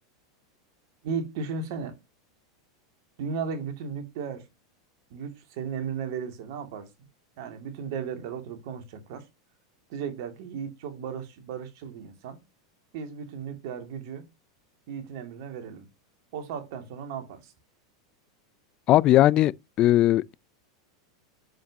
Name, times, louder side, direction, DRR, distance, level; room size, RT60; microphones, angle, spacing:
voice 1, 1.0-2.0 3.2-4.5 5.1-6.9 7.4-9.3 9.9-12.4 12.9-14.3 14.9-15.9 16.3-17.5, right 6 dB, 60° right, 2.4 m, -35 dB
voice 2, 18.9-19.5 19.8-20.3, left 14 dB, 40° left, 0.4 m, -18 dB
7.6 x 7.2 x 2.9 m
hypercardioid pair, 100°, 2 cm